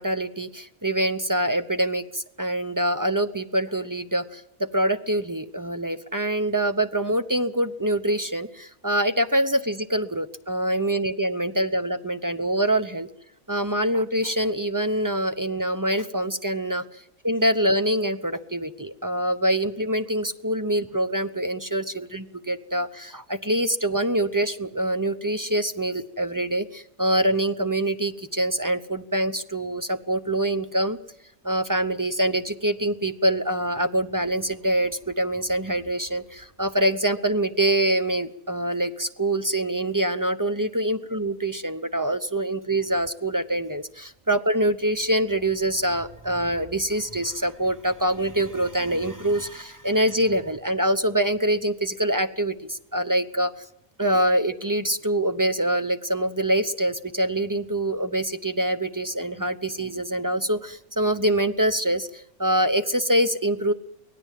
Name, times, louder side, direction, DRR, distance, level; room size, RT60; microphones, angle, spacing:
voice 1, 0.0-13.1 13.5-16.8 17.2-31.0 31.4-53.5 54.0-63.7, right 1 dB, 20° right, 10 dB, 0.5 m, -25 dB
24.0 x 17.5 x 7.5 m, 0.77 s
omnidirectional pair, 1.5 m